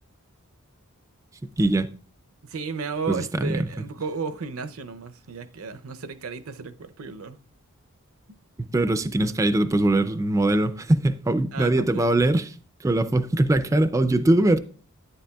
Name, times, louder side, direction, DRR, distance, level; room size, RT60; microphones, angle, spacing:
voice 1, 1.4-1.9 3.1-3.6 8.7-12.5 12.8-14.6, right 1 dB, 15° right, 0.3 m, -21 dB
voice 2, 2.4-7.4 11.5-12.1, right 5 dB, 80° right, 0.6 m, -34 dB
10.0 x 9.4 x 2.3 m
head